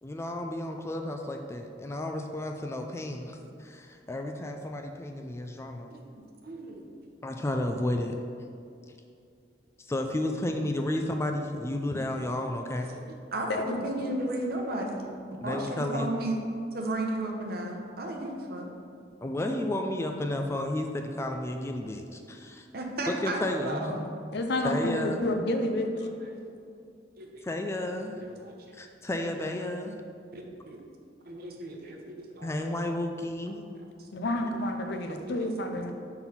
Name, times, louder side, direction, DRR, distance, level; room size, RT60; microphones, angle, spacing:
voice 1, 0.0-5.9 7.2-8.1 9.8-12.9 15.4-16.1 19.2-22.7 23.1-24.0 24.6-25.2 27.4-28.2 28.7-30.0 32.4-33.7, left 1 dB, 15° left, 4 dB, 0.3 m, -32 dB
voice 2, 6.4-6.9 12.9-15.1 15.4-16.4 16.7-18.7 22.7-24.1 25.8-26.4 27.2-27.4 28.1-28.7 30.3-30.8 31.2-32.6 33.1-33.3 34.0-34.1 34.4-34.5 35.1-35.5, right 1 dB, 60° right, 1 dB, 0.9 m, -35 dB
voice 3, 13.5-13.9 24.3-25.9 34.1-35.9, left 1 dB, 65° left, 5 dB, 0.6 m, -29 dB
6.1 x 3.9 x 5.6 m, 2.5 s
head